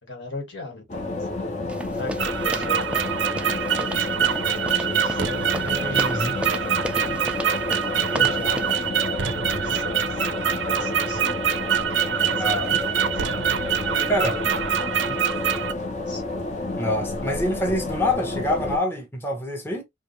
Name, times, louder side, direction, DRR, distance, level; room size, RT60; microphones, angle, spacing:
voice 1, 0.0-1.4 1.7-2.9 3.6-7.3 8.0-13.3 13.8-16.4, left 2 dB, 75° left, 1.9 m, -40 dB
sound 1, 0.9-18.8, left 2 dB, 40° left, 0.9 m, -30 dB
sound 2, 1.7-8.8, right 1 dB, 5° right, 0.4 m, -34 dB
sound 3, 2.2-15.7, right 9 dB, 85° right, 0.6 m, -25 dB
voice 2, 5.6-6.4 12.3-12.7 14.1-14.4 16.8-19.8, left 1 dB, 15° left, 0.9 m, -26 dB
5.0 x 2.5 x 3.1 m
head